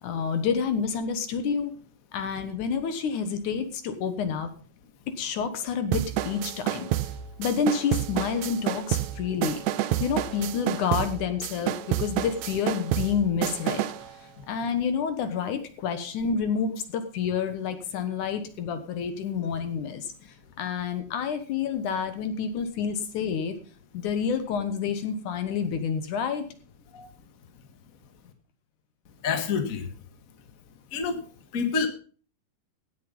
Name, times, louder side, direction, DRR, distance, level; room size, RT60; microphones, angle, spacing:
voice 1, 0.0-1.7 2.1-4.5 5.1-6.9 7.4-9.6 10.0-13.8 14.5-20.1 20.6-23.6 23.9-26.5, left 6 dB, 65° left, 10 dB, 2.5 m, -29 dB
sound 1, 5.9-14.1, right 13 dB, 85° right, 1.6 m, -29 dB
voice 2, 29.2-29.9 30.9-31.2 31.5-31.9, left 5 dB, 40° left, 7 dB, 1.3 m, -27 dB
17.0 x 7.7 x 5.4 m, 0.41 s
omnidirectional pair, 4.1 m